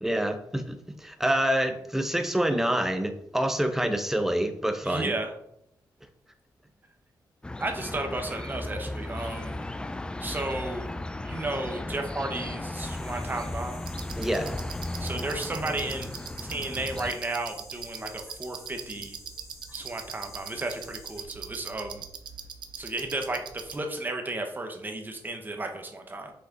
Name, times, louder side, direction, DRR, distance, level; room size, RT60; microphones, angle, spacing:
voice 1, 0.0-5.1 14.2-14.6, right 1 dB, 5° right, 7 dB, 0.8 m, -27 dB
voice 2, 4.8-5.3 7.6-9.6 10.2-10.9 11.2-13.8 15.0-16.1 16.4-19.2 19.7-22.0 22.8-26.3, right 2 dB, 25° right, 4 dB, 1.1 m, -33 dB
sound 1, 7.4-17.1, left 2 dB, 10° left, 0.3 m, -36 dB
sound 2, 12.7-21.2, left 2 dB, 35° left, 1.8 m, -51 dB
sound 3, 13.9-23.7, right 7 dB, 80° right, 0.7 m, -42 dB
6.2 x 5.1 x 3.9 m, 0.78 s
wide cardioid pair, 110°, 8 cm